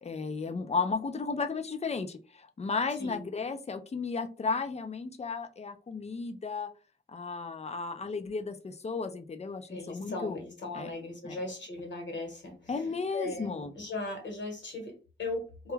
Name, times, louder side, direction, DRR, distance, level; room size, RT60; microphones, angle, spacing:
voice 1, 0.0-6.7 7.1-10.4 10.7-10.9 11.2-11.4 12.7-13.7, left 4 dB, 35° left, 8 dB, 0.4 m, -34 dB
voice 2, 9.7-15.7, left 2 dB, 65° left, 2 dB, 1.1 m, -38 dB
2.3 x 2.1 x 3.1 m, 0.34 s
wide cardioid pair, 75°, 20 cm